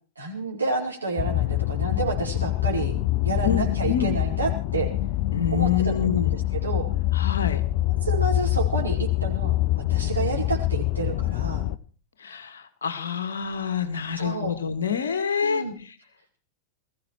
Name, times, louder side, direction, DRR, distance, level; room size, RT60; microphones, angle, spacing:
voice 1, 0.2-2.9 3.2-4.9 5.5-6.8 8.0-9.5 9.9-11.6 14.2-14.5 15.4-15.8, right 3 dB, 80° right, 0 dB, 4.6 m, -29 dB
sound 1, 1.2-11.8, left 15 dB, 45° left, 0.8 m, -25 dB
voice 2, 3.4-4.1 5.3-6.3 7.1-7.6 12.2-15.6, left 8 dB, 65° left, 10 dB, 2.0 m, -26 dB
20.5 x 14.5 x 4.7 m, 0.39 s
figure-of-eight pair, 90°, 0 cm